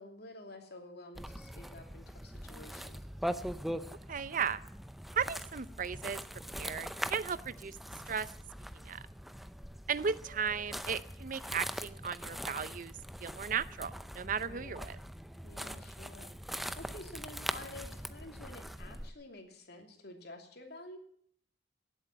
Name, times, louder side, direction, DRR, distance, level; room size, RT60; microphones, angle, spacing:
voice 1, 0.0-3.1 14.4-14.8 15.4-21.0, left 2 dB, 60° left, 4 dB, 3.0 m, -50 dB
sound 1, 1.1-19.1, equal, ahead, 0.5 m, -42 dB
voice 2, 4.1-4.6 5.1-6.2 6.6-7.8 8.1-8.3 8.8-9.0 9.9-12.9 13.2-15.0, right 6 dB, 45° right, 16 dB, 0.6 m, -35 dB
18.0 x 8.2 x 8.8 m, 0.62 s
head